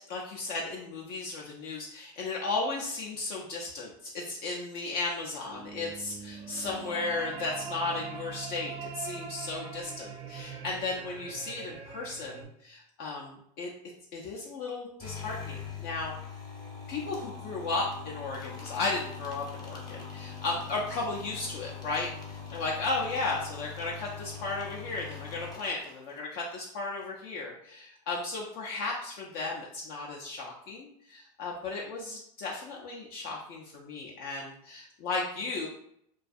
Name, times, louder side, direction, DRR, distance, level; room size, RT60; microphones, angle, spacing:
voice 1, 0.0-13.7 14.1-16.1 16.9-35.7, left 3 dB, 55° left, -2 dB, 0.5 m, -35 dB
sound 1, 5.5-12.5, right 5 dB, 35° right, 0.4 m, -42 dB
sound 2, 15.0-26.4, left 6 dB, 20° left, 0.8 m, -42 dB
2.3 x 2.3 x 2.5 m, 0.72 s
supercardioid pair, 105°, 18 cm